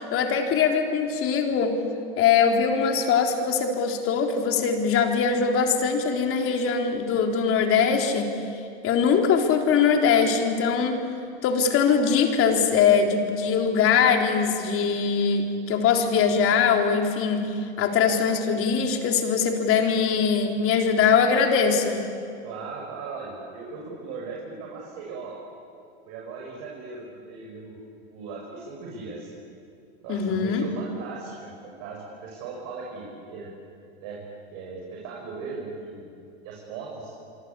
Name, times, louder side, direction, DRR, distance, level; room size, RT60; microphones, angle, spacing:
voice 1, 0.0-1.8 2.2-8.3 8.8-11.0 11.4-17.5 17.8-22.0 30.1-30.7, left 6 dB, 45° left, 3 dB, 3.9 m, -22 dB
voice 2, 22.4-25.3 26.1-27.8 28.1-29.3 30.0-33.5 34.0-34.2 34.5-36.1 36.4-37.1, right 4 dB, 55° right, -2 dB, 6.7 m, -38 dB
26.5 x 24.5 x 8.6 m, 2.5 s
hypercardioid pair, 95°, 32 cm